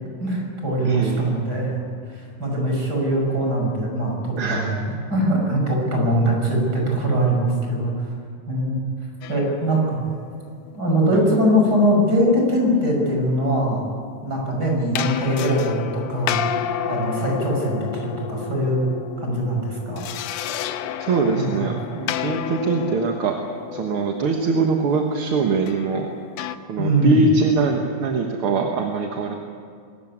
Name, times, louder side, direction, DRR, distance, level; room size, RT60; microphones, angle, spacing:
voice 1, 0.2-1.8 2.1-8.1 8.5-8.8 9.3-10.0 10.7-13.9 14.2-16.4 16.8-18.9 19.2-20.0 21.3-21.7 26.8-27.2, equal, 30° right, 0 dB, 6.3 m, -22 dB
voice 2, 0.8-1.2 4.4-4.7 11.1-11.2 21.0-23.4 23.7-26.1 26.7-29.3, right 4 dB, 55° right, 2 dB, 2.0 m, -22 dB
sound 1, 9.2-11.3 14.9-26.6, left 9 dB, 75° left, 1.9 m, -31 dB
24.0 x 15.0 x 9.9 m, 2.2 s
omnidirectional pair, 3.3 m